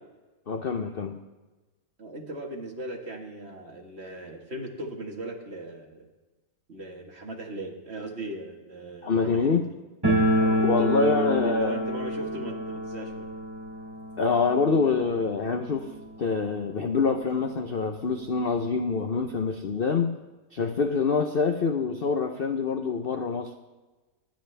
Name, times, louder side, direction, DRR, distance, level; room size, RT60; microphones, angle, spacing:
voice 1, 0.5-1.2 9.0-9.6 10.6-11.8 14.2-15.9 16.2-20.1 20.5-23.5, left 5 dB, 55° left, 6 dB, 0.6 m, -25 dB
voice 2, 2.0-6.1 6.7-9.6 10.3-13.3, right 1 dB, 35° right, 1 dB, 1.9 m, -38 dB
sound 1, 10.0-16.7 17.0-17.1 17.3-17.4 18.2-18.3 18.6-19.8, equal, 10° right, 3.6 m, -28 dB
25.0 x 10.5 x 3.4 m, 1.2 s
omnidirectional pair, 1.9 m